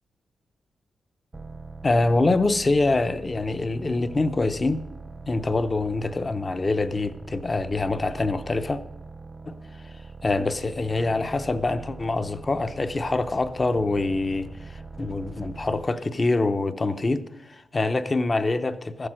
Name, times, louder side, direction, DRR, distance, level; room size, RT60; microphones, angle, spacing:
sound 1, 1.3-16.0, right 3 dB, 20° right, 0.3 m, -42 dB
voice 1, 1.8-4.8 5.3-8.8 9.5-19.1, left 2 dB, 25° left, 0.6 m, -25 dB
14.5 x 7.8 x 6.2 m
wide cardioid pair, 175°, 0 cm